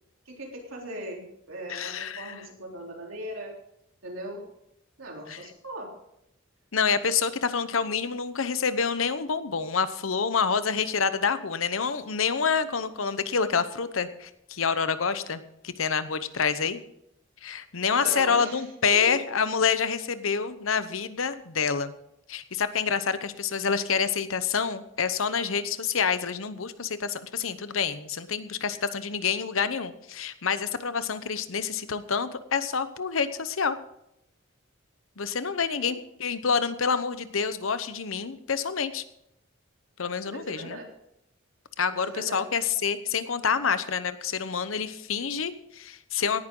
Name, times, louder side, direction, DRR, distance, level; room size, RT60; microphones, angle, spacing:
voice 1, 0.3-3.5 4.0-4.4 5.0-5.9 17.9-19.2 35.7-36.0 40.3-40.9 41.9-42.4, right 1 dB, 90° right, -1 dB, 3.6 m, -39 dB
voice 2, 1.7-2.3 5.3-5.4 6.7-16.8 17.4-21.9 22.3-33.8 35.2-39.0 40.0-40.8 41.8-46.5, left 6 dB, 90° left, 12 dB, 0.9 m, -27 dB
17.5 x 11.0 x 3.8 m, 0.80 s
head